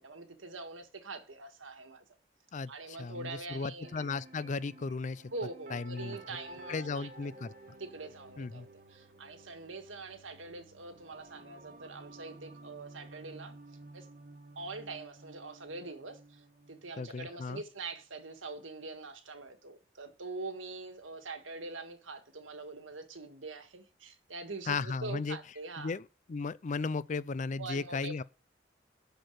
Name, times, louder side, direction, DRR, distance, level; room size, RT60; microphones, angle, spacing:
voice 1, 0.0-2.0 2.7-3.9 5.3-7.1 7.8-13.6 13.9-14.1 14.5-25.9 27.6-28.2, right 3 dB, 90° right, 1.6 m, -44 dB
voice 2, 2.5-5.3 5.7-6.2 6.7-7.5 8.4-8.7 17.0-17.6 24.7-25.4 25.8-26.0 26.3-28.2, left 4 dB, 40° left, 0.4 m, -35 dB
sound 1, 3.8-17.8, right 2 dB, 45° right, 1.4 m, -53 dB
11.5 x 4.5 x 7.7 m
head